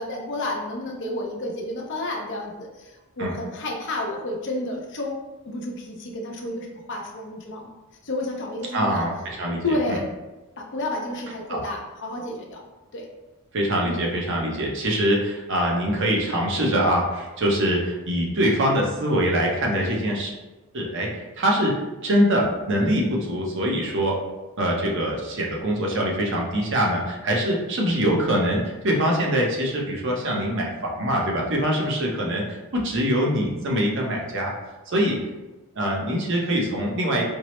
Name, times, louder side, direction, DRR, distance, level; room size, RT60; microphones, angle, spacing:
voice 1, 0.0-7.7 8.0-9.0 9.6-10.1 10.6-12.6 12.9-13.1 13.8-13.9, left 1 dB, 55° left, 0 dB, 0.6 m, -30 dB
voice 2, 8.7-10.0 11.5-11.6 13.5-20.3 20.7-21.1 21.4-24.2 24.6-34.5 34.9-35.2 35.8-37.2, equal, 55° right, -1 dB, 0.7 m, -23 dB
4.4 x 2.0 x 3.1 m, 1.1 s
head